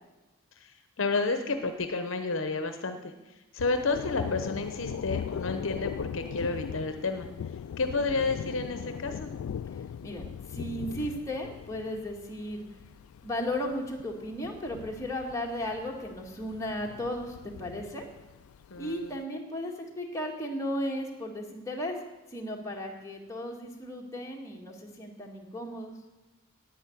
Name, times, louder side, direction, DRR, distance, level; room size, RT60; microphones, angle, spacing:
voice 1, 1.0-3.1 3.5-7.3 7.8-9.3 18.7-19.1, left 3 dB, 65° left, 7 dB, 0.9 m, -30 dB
Thunder, 3.6-19.1, left 8 dB, 85° left, 0.3 m, -40 dB
voice 2, 10.0-12.6 13.2-18.0 18.8-22.0 22.3-25.9, left 1 dB, 15° left, -1 dB, 1.9 m, -35 dB
10.5 x 9.2 x 8.5 m, 1.1 s
head